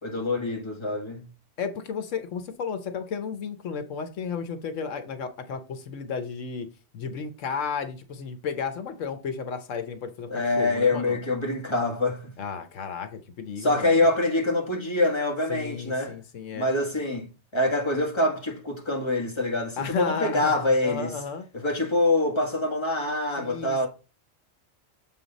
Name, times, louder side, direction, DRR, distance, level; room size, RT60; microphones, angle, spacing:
voice 1, 0.0-1.3 10.3-12.3 13.6-16.2 16.5-17.3 17.5-21.1 21.5-23.9, left 2 dB, 20° left, 1.8 m, -25 dB
voice 2, 1.6-6.7 6.9-11.2 12.4-14.1 15.5-16.7 19.8-20.5 20.8-21.5 23.4-23.9, left 6 dB, 85° left, 1.2 m, -33 dB
7.7 x 4.3 x 4.0 m
omnidirectional pair, 1.3 m